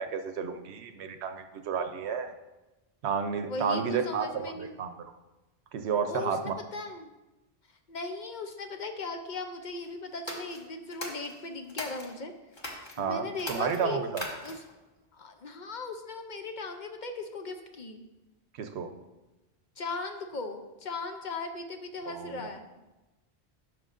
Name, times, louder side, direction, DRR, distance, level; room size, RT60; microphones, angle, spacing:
voice 1, 0.0-2.3 3.0-4.9 5.7-6.6 13.0-14.3 18.6-18.9 22.1-22.5, right 6 dB, 85° right, 8 dB, 0.9 m, -31 dB
voice 2, 3.5-4.8 6.1-7.1 7.9-12.3 13.0-14.0 14.4-14.6 15.1-18.0 19.8-22.7, left 3 dB, 55° left, 5 dB, 0.7 m, -38 dB
sound 1, 10.1-12.1 12.5-13.0 13.3-14.8, left 1 dB, 25° left, 1.1 m, -40 dB
11.0 x 6.0 x 2.5 m, 1.1 s
omnidirectional pair, 1.1 m